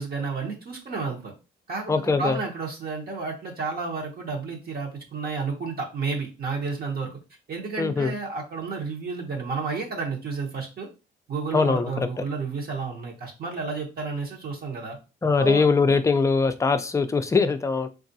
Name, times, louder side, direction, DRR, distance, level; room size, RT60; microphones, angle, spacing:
voice 1, 0.0-1.3 1.7-7.2 7.5-10.9 11.3-15.0 15.4-15.7, right 4 dB, 50° right, 0 dB, 0.8 m, -31 dB
voice 2, 1.9-2.4 7.8-8.1 11.5-12.1 15.2-17.9, left 4 dB, 15° left, 8 dB, 0.4 m, -22 dB
3.5 x 2.4 x 2.6 m, 0.31 s
cardioid pair, 90°, 20 cm